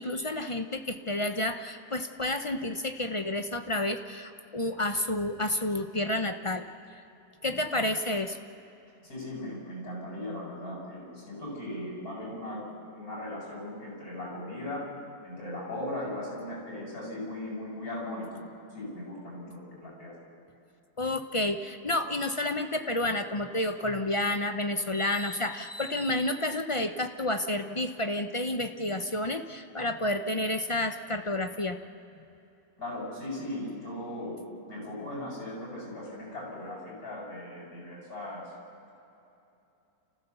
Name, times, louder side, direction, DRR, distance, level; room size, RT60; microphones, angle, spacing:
voice 1, 0.0-6.6 6.9-7.0 7.4-8.4 21.0-31.8, left 1 dB, 35° left, 7 dB, 0.5 m, -30 dB
voice 2, 9.0-12.6 12.9-14.9 15.2-18.4 18.7-20.1 32.8-34.4 34.7-38.5, left 1 dB, 65° left, -4 dB, 8.3 m, -38 dB
29.5 x 15.5 x 7.0 m, 2.8 s
omnidirectional pair, 1.7 m